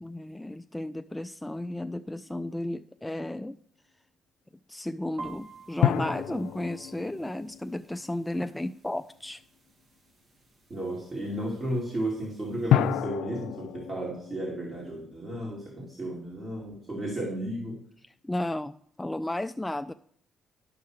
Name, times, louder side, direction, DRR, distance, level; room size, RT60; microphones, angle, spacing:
voice 1, 0.0-3.6 4.7-9.4 18.2-19.9, left 1 dB, 10° left, 11 dB, 0.3 m, -33 dB
sound 1, 2.0-2.2 5.8-8.6 12.7-15.9, left 11 dB, 90° left, 0.4 m, -30 dB
sound 2, 5.2-13.0, right 3 dB, 45° right, 2.0 m, -51 dB
voice 2, 10.7-17.8, right 1 dB, 30° right, -3 dB, 2.5 m, -33 dB
12.0 x 6.0 x 4.8 m, 0.65 s
cardioid pair, 90°, 0 cm